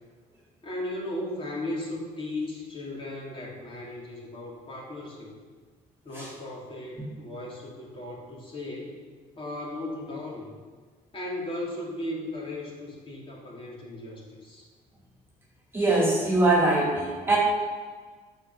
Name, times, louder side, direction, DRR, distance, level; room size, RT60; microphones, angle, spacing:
voice 1, 0.6-5.3 6.0-9.0 9.4-10.5 11.1-14.6, left 1 dB, 30° left, -4 dB, 3.8 m, -36 dB
voice 2, 15.7-17.4, right 2 dB, 15° right, -4 dB, 2.9 m, -22 dB
9.7 x 6.6 x 7.3 m, 1.5 s
cardioid pair, 110°, 17 cm